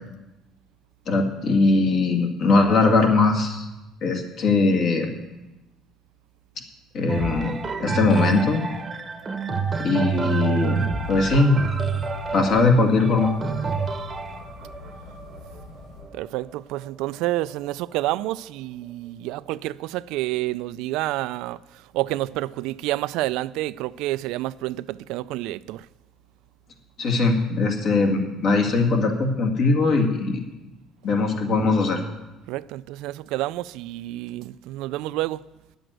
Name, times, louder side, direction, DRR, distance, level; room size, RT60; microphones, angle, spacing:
voice 1, 1.1-3.6 4.0-5.1 6.9-8.6 9.8-10.8 11.1-11.6 12.3-13.3 27.0-30.4 31.0-32.0, left 3 dB, 55° left, 2.1 m, -20 dB
sound 1, 7.1-16.9 17.5-17.6, right 5 dB, 25° right, 0.9 m, -28 dB
sound 2, 11.0-16.0, left 3 dB, 80° left, 4.2 m, -44 dB
voice 2, 16.1-21.6 21.9-25.9 32.5-35.4, right 17 dB, 80° right, 0.3 m, -29 dB
10.5 x 7.8 x 7.9 m
cardioid pair, 125°, 0 cm